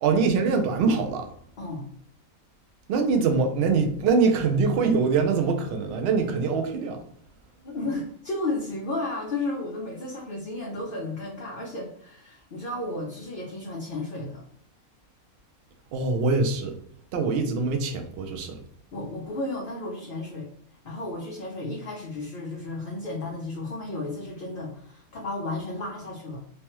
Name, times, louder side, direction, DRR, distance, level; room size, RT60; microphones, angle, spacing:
voice 1, 0.0-1.3 2.9-7.0 15.9-16.7 17.1-18.6, right 4 dB, 70° right, 0.6 m, -23 dB
voice 2, 7.6-14.4 18.9-20.5 20.8-26.4, left 2 dB, 55° left, 0.6 m, -33 dB
3.2 x 2.1 x 3.0 m
omnidirectional pair, 1.5 m